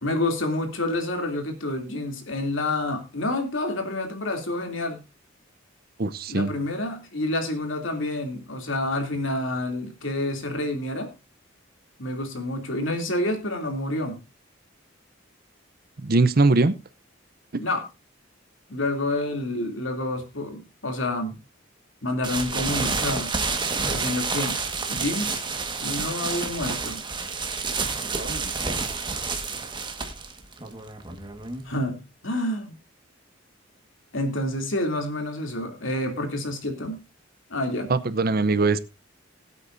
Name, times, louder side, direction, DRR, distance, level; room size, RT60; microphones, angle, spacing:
voice 1, 0.0-5.0 6.3-11.1 12.0-14.2 17.6-17.8 18.7-21.4 22.0-23.3 23.9-24.6 24.9-25.4 25.8-27.0 31.6-32.7 34.1-37.0 37.5-37.9, left 1 dB, 70° left, 4 dB, 2.9 m, -28 dB
voice 2, 6.0-6.5 16.0-16.8 28.2-28.5 37.9-38.8, right 3 dB, 50° right, 15 dB, 0.7 m, -21 dB
sound 1, 22.2-31.8, right 4 dB, 25° right, 1.6 m, -29 dB
21.0 x 8.3 x 2.6 m, 0.27 s
head